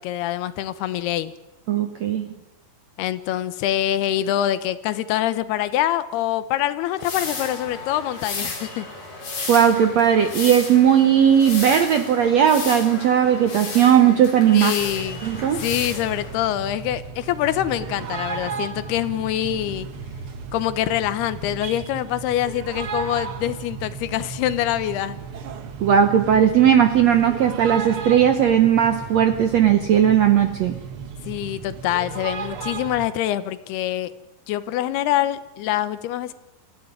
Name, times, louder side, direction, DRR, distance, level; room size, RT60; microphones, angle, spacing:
voice 1, 0.0-1.3 3.0-8.9 14.5-15.2 15.6-19.9 20.5-25.2 31.2-34.1 34.5-36.3, left 12 dB, 90° left, 14 dB, 3.0 m, -25 dB
voice 2, 1.7-2.3 9.5-14.7 15.2-15.6 25.8-30.8, right 9 dB, 75° right, 7 dB, 1.6 m, -17 dB
sound 1, 7.0-16.3, left 3 dB, 60° left, 6.8 m, -33 dB
sound 2, 14.8-33.1, right 6 dB, 55° right, 1.5 m, -35 dB
24.5 x 15.0 x 9.7 m, 1.0 s
omnidirectional pair, 4.5 m